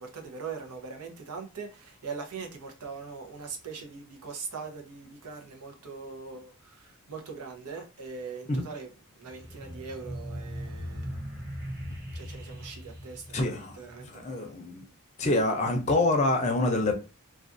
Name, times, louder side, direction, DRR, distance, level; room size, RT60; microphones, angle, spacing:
voice 1, 0.0-8.9 9.2-11.5 12.1-14.5, right 5 dB, 90° right, 0.7 m, -41 dB
sound 1, 9.2-14.2, equal, 10° right, 0.6 m, -39 dB
voice 2, 13.3-13.8 14.0-14.8 15.2-17.0, left 2 dB, 30° left, 0.5 m, -26 dB
2.4 x 2.3 x 2.5 m
head